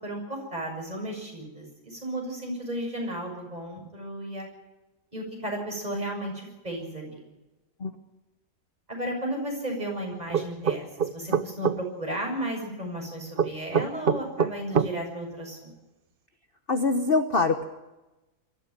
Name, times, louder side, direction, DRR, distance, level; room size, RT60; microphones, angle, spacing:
voice 1, 0.0-4.5 5.1-7.2 8.9-15.7, right 1 dB, 25° right, 0 dB, 7.1 m, -34 dB
sound 1, 10.3-11.8 13.4-14.9, right 7 dB, 45° right, 0.8 m, -24 dB
voice 2, 16.7-17.6, left 3 dB, 40° left, 7 dB, 1.2 m, -23 dB
23.0 x 14.5 x 9.5 m, 1.1 s
omnidirectional pair, 1.7 m